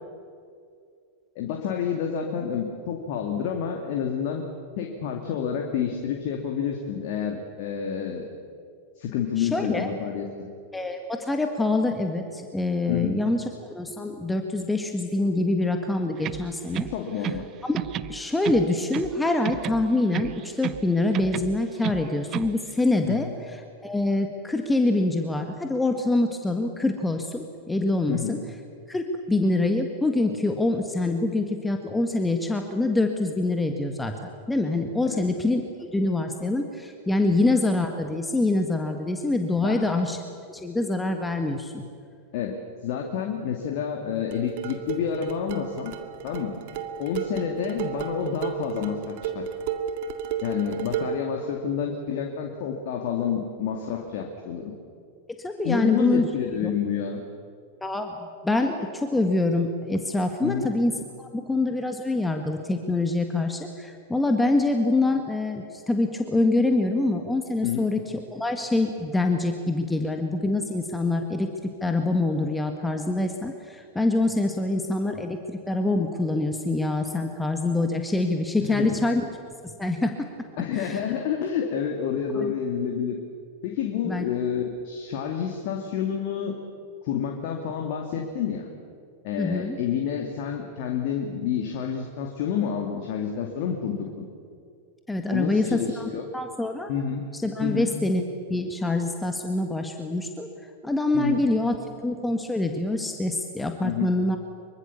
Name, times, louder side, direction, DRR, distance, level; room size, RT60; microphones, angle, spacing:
voice 1, 1.4-4.4 4.8-8.3 9.0-10.5 12.9-13.2 16.9-17.5 23.1-23.3 28.1-28.4 35.0-35.2 37.2-37.3 39.6-39.9 42.3-42.6 42.8-45.9 46.2-46.6 47.0-49.5 50.4-54.7 55.6-57.2 60.4-60.7 67.6-67.9 78.6-79.0 80.6-83.2 83.6-86.6 87.0-88.7 89.2-94.3 95.3-96.3 96.9-97.2 97.6-97.9 101.1-101.4 103.8-104.1, left 8 dB, 50° left, 2 dB, 2.4 m, -29 dB
voice 2, 9.4-9.9 10.7-13.4 13.8-16.9 17.7-17.8 18.1-23.3 23.8-28.4 28.9-40.2 40.5-41.8 55.4-56.7 57.8-60.9 61.2-68.0 68.3-79.2 79.6-80.3 80.7-81.0 82.4-82.5 84.0-84.2 89.4-89.8 95.1-96.9 97.3-100.5 100.8-101.8 102.0-104.4, left 2 dB, 10° left, 5 dB, 1.7 m, -25 dB
sound 1, 16.2-17.5 17.8-19.2 19.5-20.9 21.1-22.6, right 12 dB, 35° right, 0.6 m, -32 dB
sound 2, 44.3-51.3, right 8 dB, 50° right, 2.0 m, -33 dB
25.0 x 23.5 x 7.1 m, 2.3 s
figure-of-eight pair, 90°, 0 cm